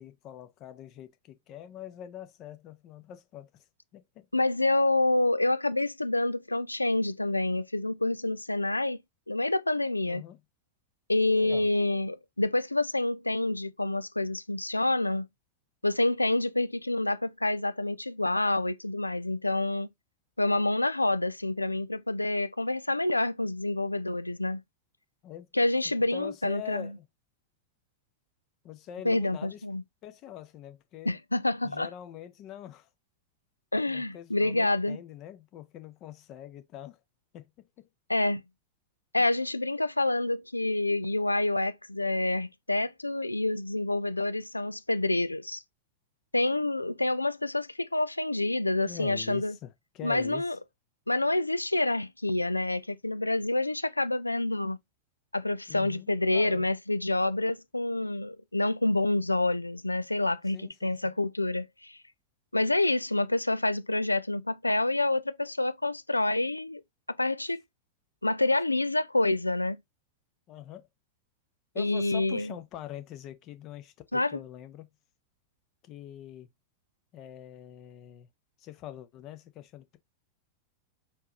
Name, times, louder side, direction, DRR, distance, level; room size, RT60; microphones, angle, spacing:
voice 1, 0.0-3.6 3.9-4.3 10.0-10.4 11.3-11.7 25.2-25.5 26.0-27.0 28.6-29.6 30.0-31.2 31.6-32.9 33.9-37.0 37.3-37.9 48.8-50.5 55.7-56.7 60.5-61.2 70.5-70.9 71.7-74.9 75.8-76.5 77.1-78.3 78.6-80.0, left 11 dB, 35° left, 0.8 m, -44 dB
voice 2, 4.3-9.0 9.3-10.2 11.1-15.3 15.8-19.9 20.4-24.6 25.5-26.9 29.0-29.8 31.1-31.9 33.7-35.0 38.1-38.4 39.1-45.6 46.3-49.5 50.0-50.6 51.1-54.8 55.3-62.0 62.5-66.8 67.1-67.6 68.2-69.8 71.8-72.5 74.1-74.4, left 2 dB, 85° left, 0.3 m, -27 dB
4.5 x 3.7 x 3.0 m
figure-of-eight pair, 90°, 0 cm